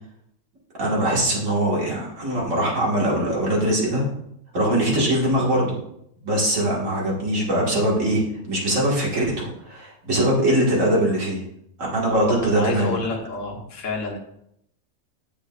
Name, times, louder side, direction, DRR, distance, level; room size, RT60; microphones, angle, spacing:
voice 1, 0.8-4.0 4.5-5.7 6.2-11.4 11.9-13.0, right 1 dB, 65° right, -4 dB, 2.2 m, -22 dB
voice 2, 12.0-14.2, left 3 dB, 65° left, -2 dB, 1.5 m, -29 dB
8.1 x 7.0 x 2.4 m, 0.74 s
omnidirectional pair, 1.5 m